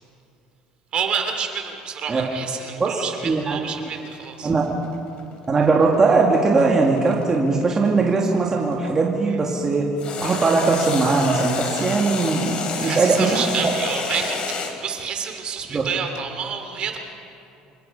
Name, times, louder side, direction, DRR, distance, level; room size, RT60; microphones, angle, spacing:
voice 1, 0.9-4.5 9.3-9.4 12.8-17.0, right 7 dB, 45° right, 5 dB, 2.9 m, -29 dB
voice 2, 2.8-3.7 4.4-4.6 5.5-9.9 10.2-13.5 15.7-15.9, right 3 dB, 25° right, -1 dB, 2.2 m, -20 dB
sound 1, 3.7-8.9 10.0-14.7, left 5 dB, 45° left, 3.2 m, -30 dB
27.0 x 17.5 x 5.5 m, 2.6 s
supercardioid pair, 105°, 2 cm